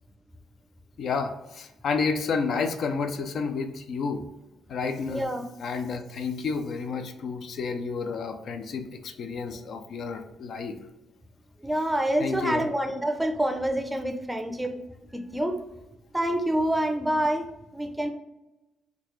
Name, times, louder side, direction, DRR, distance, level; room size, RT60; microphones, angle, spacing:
voice 1, 1.0-4.2 4.7-5.3 5.6-10.8 12.2-12.7, left 5 dB, 65° left, 7 dB, 0.4 m, -30 dB
voice 2, 5.1-5.4 11.6-14.8 15.1-15.6 16.1-18.1, right 1 dB, 10° right, 6 dB, 0.5 m, -27 dB
3.8 x 2.3 x 3.1 m, 0.97 s
cardioid pair, 90°, 0 cm